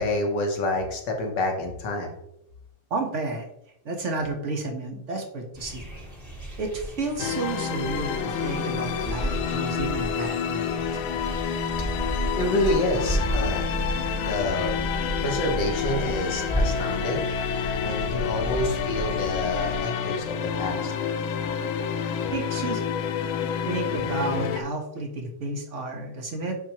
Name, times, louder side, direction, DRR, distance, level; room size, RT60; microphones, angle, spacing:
voice 1, 0.0-2.1 12.4-13.7 14.3-14.7 15.2-17.2 17.8-20.9, left 1 dB, 60° left, 2 dB, 1.7 m, -28 dB
voice 2, 2.9-3.5 3.8-5.8 6.6-11.0 22.3-22.8 23.7-26.6, right 3 dB, 40° right, 2 dB, 1.3 m, -31 dB
sound 1, 5.5-19.8, equal, 10° right, 1.5 m, -32 dB
sound 2, 7.2-24.6, left 7 dB, 80° left, 1.4 m, -29 dB
10.5 x 4.5 x 3.0 m, 0.76 s
omnidirectional pair, 2.3 m